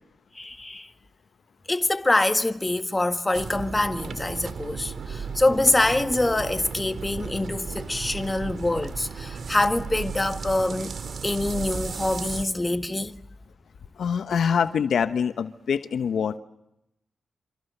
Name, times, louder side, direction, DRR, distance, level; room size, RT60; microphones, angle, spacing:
voice 1, 0.3-0.9 1.7-11.0 11.2-13.2, left 2 dB, 25° left, 1.6 m, -25 dB
sound 1, 3.3-12.4, right 5 dB, 70° right, 2.3 m, -35 dB
voice 2, 14.0-16.4, left 7 dB, 75° left, 1.0 m, -24 dB
28.5 x 26.5 x 6.8 m
supercardioid pair, 40°, 0 cm